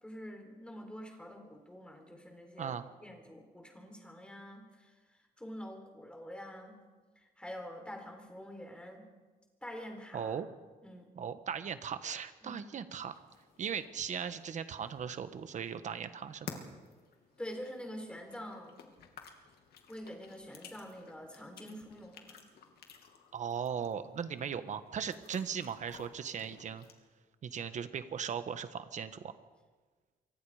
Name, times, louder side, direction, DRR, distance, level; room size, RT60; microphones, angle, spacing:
voice 1, 0.0-2.7 3.0-6.8 7.2-9.1 9.6-10.4 10.8-11.1 12.4-12.6 17.4-18.8 19.9-22.5, equal, 5° left, 4 dB, 3.9 m, -46 dB
voice 2, 10.1-10.5 11.1-13.2 13.6-16.6 23.3-26.8 27.4-29.3, right 7 dB, 50° right, 11 dB, 1.4 m, -38 dB
sound 1, 13.1-26.9, left 7 dB, 85° left, 2.9 m, -55 dB
26.5 x 24.0 x 5.0 m, 1.4 s
cardioid pair, 150°, 16 cm